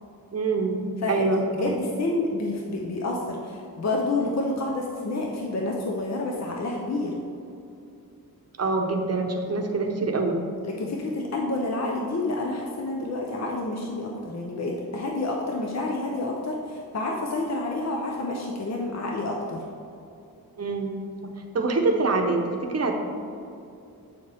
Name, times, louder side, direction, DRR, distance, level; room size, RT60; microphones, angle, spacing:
voice 1, 0.3-0.8 1.1-1.7 8.6-10.4 20.6-20.9 21.5-22.9, right 3 dB, 40° right, 3 dB, 0.9 m, -25 dB
voice 2, 1.0-7.2 10.6-19.6, left 2 dB, 45° left, 0 dB, 0.7 m, -29 dB
8.0 x 7.0 x 3.4 m, 2.7 s
wide cardioid pair, 140°, 37 cm